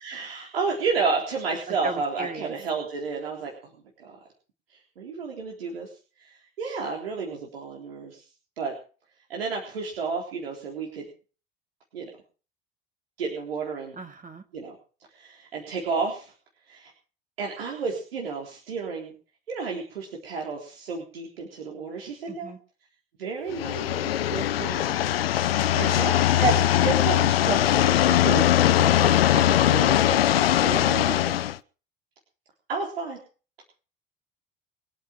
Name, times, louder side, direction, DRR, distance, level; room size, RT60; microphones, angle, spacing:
voice 1, 0.0-3.7 5.0-5.9 6.2-8.2 8.6-8.7 9.3-11.1 11.9-12.1 13.2-14.0 14.5-14.8 15.1-16.3 16.7-16.9 17.4-19.1 19.5-22.5 23.2-31.4 32.7-33.2, right 4 dB, 85° right, 0 dB, 3.8 m, -31 dB
voice 2, 1.7-2.5 14.0-14.4 22.3-22.6 25.6-26.1 30.6-30.9, right 3 dB, 30° right, 7 dB, 2.8 m, -39 dB
sound 1, 23.5-31.6, left 12 dB, 85° left, 0.7 m, -21 dB
23.0 x 8.8 x 5.9 m, 0.38 s
hypercardioid pair, 60°, 29 cm